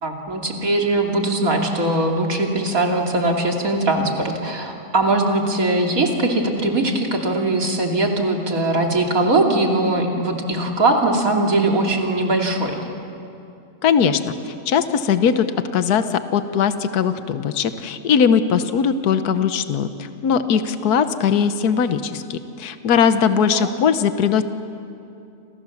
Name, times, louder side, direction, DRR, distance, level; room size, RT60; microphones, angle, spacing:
voice 1, 0.0-12.8 23.5-23.8, right 2 dB, 60° right, 1 dB, 3.2 m, -20 dB
voice 2, 13.8-15.5 15.7-24.4, left 7 dB, 75° left, 10 dB, 1.5 m, -20 dB
28.5 x 28.0 x 7.2 m, 2.7 s
omnidirectional pair, 1.7 m